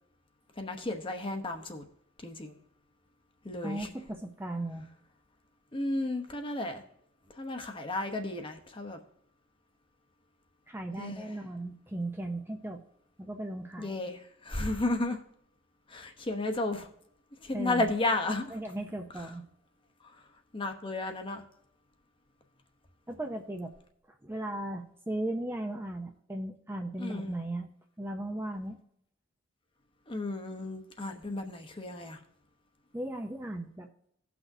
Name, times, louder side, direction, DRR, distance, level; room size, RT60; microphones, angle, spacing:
voice 1, 0.6-1.8 2.2-2.5 3.4-3.9 5.7-6.8 7.4-9.0 11.0-11.3 13.8-15.2 15.9-16.9 17.4-18.5 20.5-21.4 27.0-27.3 30.1-32.2, left 2 dB, 25° left, 0.9 m, -33 dB
voice 2, 3.6-4.9 10.7-12.8 13.2-14.0 17.5-17.9 18.5-19.4 23.1-23.7 24.2-27.7 28.0-28.8 32.9-33.9, right 1 dB, 10° right, 0.5 m, -36 dB
16.5 x 6.0 x 2.7 m
head